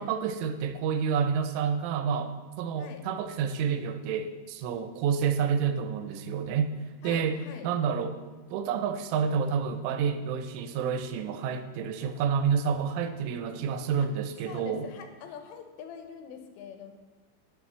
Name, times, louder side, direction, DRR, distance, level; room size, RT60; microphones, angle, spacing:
voice 1, 0.0-6.8 7.0-7.4 7.6-8.2 8.5-14.9, right 7 dB, 85° right, 8 dB, 3.3 m, -29 dB
voice 2, 7.0-7.7 14.0-14.1 14.5-16.9, left 7 dB, 90° left, 7 dB, 3.7 m, -44 dB
10.0 x 7.4 x 7.3 m, 1.3 s
omnidirectional pair, 5.5 m